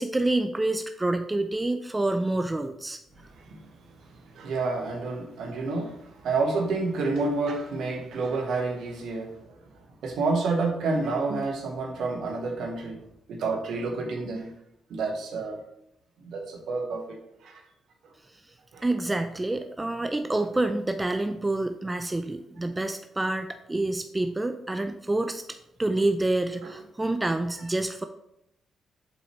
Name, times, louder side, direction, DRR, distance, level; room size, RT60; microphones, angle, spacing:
voice 1, 0.0-3.0 18.8-25.4 25.8-28.0, right 2 dB, 20° right, 8 dB, 0.6 m, -27 dB
voice 2, 3.2-3.7 4.0-9.6 10.0-13.0 13.3-14.5 14.9-15.6 16.2-17.6 18.7-18.8 26.6-26.8, right 3 dB, 65° right, 3 dB, 1.3 m, -29 dB
7.3 x 5.6 x 3.2 m, 0.80 s
hypercardioid pair, 40°, 0 cm